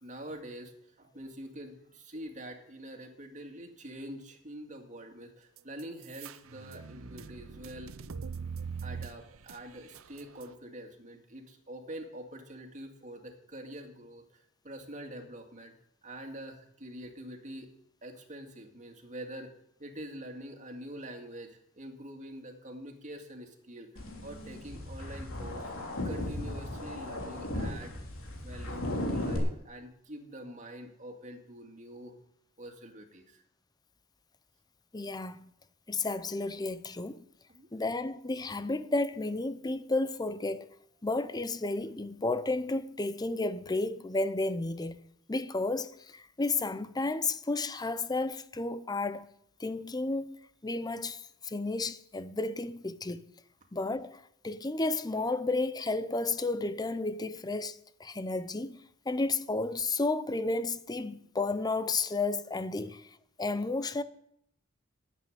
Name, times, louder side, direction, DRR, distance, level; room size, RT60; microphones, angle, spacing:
voice 1, 0.0-7.9 8.8-15.7 16.0-17.7 18.0-19.5 19.8-23.9 24.2-25.8 26.0-28.0 28.4-32.2 32.6-33.4 37.5-37.7, right 1 dB, 35° right, 2.1 m, -45 dB
sound 1, 5.6-10.5, right 5 dB, 75° right, 0.6 m, -42 dB
sound 2, 24.0-29.4, left 1 dB, 85° left, 3.2 m, -36 dB
voice 2, 34.9-35.5 35.9-37.2 37.7-40.7 41.0-45.0 45.3-49.3 49.6-50.4 50.6-53.3 53.7-58.8 59.1-63.1 63.4-64.0, left 3 dB, 20° left, 0.6 m, -32 dB
11.0 x 8.2 x 9.2 m
head